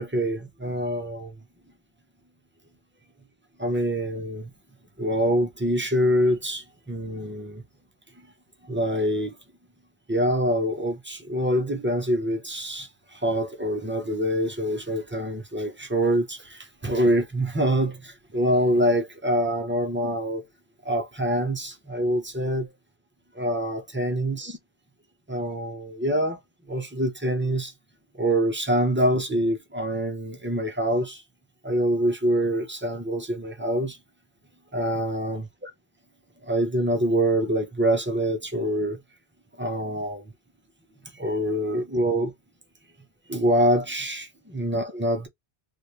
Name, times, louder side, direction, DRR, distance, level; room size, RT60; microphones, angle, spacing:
voice 1, 0.0-1.3 3.6-4.5 5.0-7.6 8.7-9.3 10.1-20.4 20.8-22.7 23.3-24.6 25.3-26.4 26.7-27.7 28.2-31.2 31.6-34.0 34.7-35.7 36.4-39.0 39.6-40.2 41.1-42.3 43.3-45.3, equal, 15° right, 0.5 m, -25 dB
3.3 x 2.5 x 2.7 m
omnidirectional pair, 1.1 m